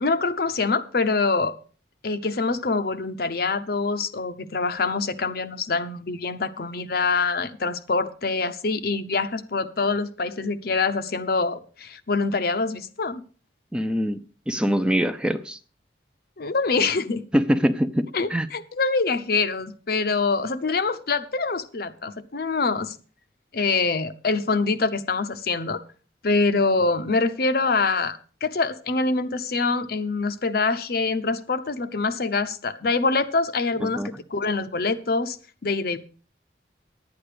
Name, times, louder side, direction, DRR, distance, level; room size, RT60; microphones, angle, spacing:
voice 1, 0.0-1.5 2.0-13.2 16.4-17.2 18.1-23.0 23.5-25.8 26.2-35.4 35.6-36.0, left 4 dB, 55° left, 0.7 m, -25 dB
voice 2, 13.7-15.6 17.3-18.5 33.8-34.1, equal, 5° right, 0.4 m, -24 dB
11.0 x 8.6 x 5.0 m
head